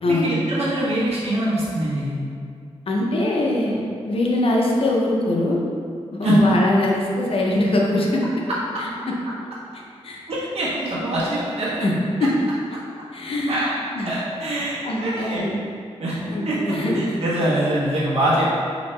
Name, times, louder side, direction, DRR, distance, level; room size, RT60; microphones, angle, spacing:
voice 1, 0.0-2.1 6.2-6.4 10.3-11.9 13.5-13.8 14.0-15.4 16.0-16.2 16.4-18.5, right 1 dB, 65° right, -8 dB, 1.4 m, -24 dB
voice 2, 2.9-5.6 6.2-8.2 9.1-9.2 10.0-10.2 11.8-11.9 12.2-12.3 13.1-13.6 13.9-14.1 14.8-15.6 16.3-17.0, left 1 dB, 55° left, -2 dB, 0.7 m, -22 dB
4.9 x 2.8 x 3.3 m, 2.3 s
wide cardioid pair, 105°, 11 cm